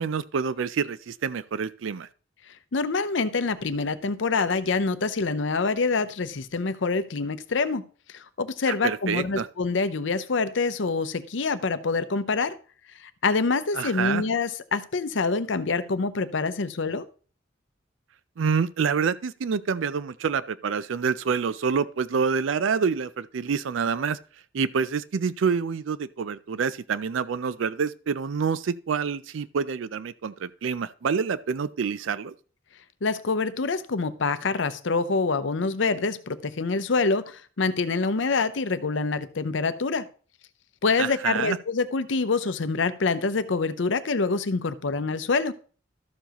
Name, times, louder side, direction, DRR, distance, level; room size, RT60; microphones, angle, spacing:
voice 1, 0.0-2.1 8.8-9.5 13.7-14.2 18.4-24.2 24.5-32.3 41.0-41.6, right 6 dB, 80° right, 0.4 m, -27 dB
voice 2, 2.7-7.8 8.1-12.6 13.0-17.0 33.0-40.0 40.8-45.5, left 4 dB, 70° left, 0.7 m, -26 dB
12.5 x 7.0 x 3.0 m
head